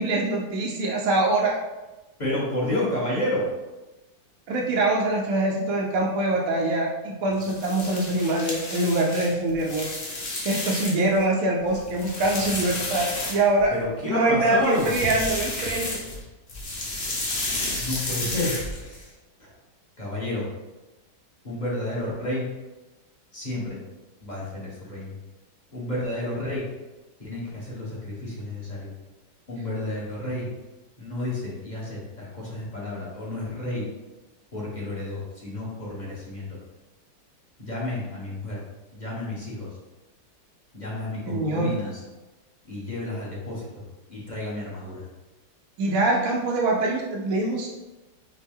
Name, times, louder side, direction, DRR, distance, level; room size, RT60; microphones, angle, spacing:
voice 1, 0.0-1.6 4.5-9.9 10.4-13.7 14.0-15.9 41.2-41.7 45.8-47.7, right 2 dB, 65° right, -2 dB, 0.9 m, -24 dB
voice 2, 2.2-3.4 13.7-14.9 17.8-19.1 19.4-19.5 20.0-20.4 21.4-22.4 23.3-23.8 24.2-25.1 25.7-26.6 27.2-28.9 29.5-30.5 31.0-33.8 34.5-36.6 37.6-38.6 38.9-39.7 40.7-41.9 42.7-43.7 44.1-45.0, left 1 dB, 30° left, -6 dB, 1.1 m, -30 dB
sound 1, 7.3-11.2 11.6-13.8 14.6-16.2 16.5-19.0, left 2 dB, 45° left, 0.8 m, -32 dB
6.0 x 2.2 x 3.5 m, 1.1 s
omnidirectional pair, 1.9 m